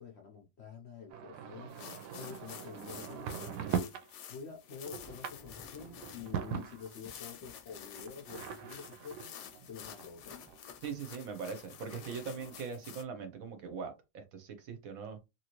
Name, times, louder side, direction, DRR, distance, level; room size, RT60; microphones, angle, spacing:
voice 1, 0.0-3.9 4.3-10.5, left 6 dB, 60° left, 0.7 m, -48 dB
sound 1, 1.1-4.1 4.5-7.2 8.0-10.6 11.1-11.2 11.5-11.6 11.8-12.6, right 7 dB, 85° right, 1.2 m, -41 dB
sound 2, 1.7-13.0, left 9 dB, 90° left, 1.2 m, -50 dB
sound 3, 4.4-12.9, left 1 dB, ahead, 0.5 m, -60 dB
voice 2, 10.8-15.2, right 5 dB, 65° right, 1.0 m, -41 dB
2.9 x 2.7 x 2.9 m
omnidirectional pair, 1.8 m